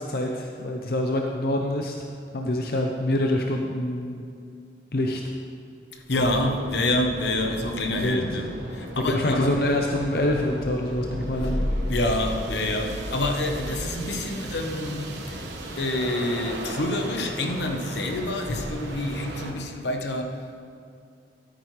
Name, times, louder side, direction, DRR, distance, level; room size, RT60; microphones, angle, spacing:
voice 1, 0.0-2.1 2.3-4.2 4.9-5.2 7.9-8.2 9.1-11.6, left 1 dB, 55° left, 1 dB, 0.6 m, -26 dB
voice 2, 5.9-9.6 11.3-15.4 15.8-20.6, left 1 dB, 80° left, 3 dB, 1.0 m, -27 dB
sound 1, 6.1-19.5, right 1 dB, 90° right, 1.1 m, -36 dB
13.0 x 8.9 x 3.2 m, 2.4 s
head